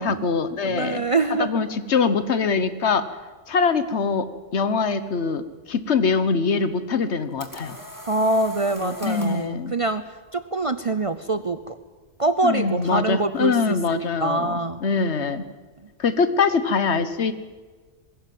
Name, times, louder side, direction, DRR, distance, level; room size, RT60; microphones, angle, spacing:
voice 1, 0.0-1.0 1.4-3.1 3.5-4.3 4.5-7.8 8.8-9.7 12.4-14.5 14.8-15.4 16.0-17.3, left 5 dB, 65° left, 12 dB, 1.3 m, -23 dB
voice 2, 0.6-1.6 8.1-11.8 12.2-14.8, right 2 dB, 35° right, 11 dB, 0.6 m, -25 dB
sound 1, 7.0-9.5, left 1 dB, 15° left, 2.0 m, -40 dB
20.5 x 16.5 x 7.7 m, 1.4 s
omnidirectional pair, 1.2 m